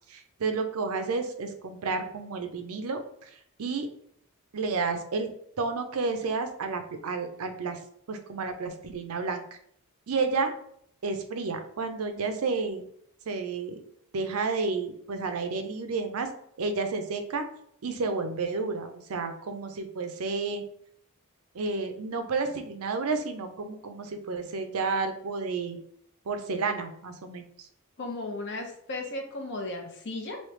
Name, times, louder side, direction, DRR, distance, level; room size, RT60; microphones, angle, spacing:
voice 1, 0.1-3.3 3.6-3.9 4.5-5.3 5.6-7.8 8.1-9.4 10.1-10.5 11.0-12.8 13.3-13.8 14.1-16.3 16.6-17.5 17.8-20.6 21.5-25.8 26.3-27.7, right 4 dB, 75° right, 7 dB, 0.5 m, -31 dB
voice 2, 28.0-30.4, left 2 dB, 55° left, 3 dB, 0.7 m, -35 dB
3.2 x 2.8 x 3.1 m, 0.67 s
head